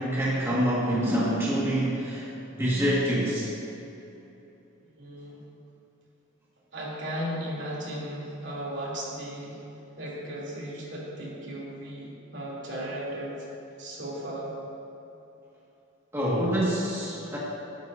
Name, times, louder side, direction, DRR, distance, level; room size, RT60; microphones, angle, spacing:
voice 1, 0.0-3.5 16.1-17.4, equal, 10° right, -8 dB, 1.9 m, -26 dB
voice 2, 4.9-5.4 6.7-9.6 10.0-13.4 13.8-14.5, right 1 dB, 55° right, -5 dB, 3.2 m, -36 dB
21.5 x 10.5 x 2.8 m, 3.0 s
head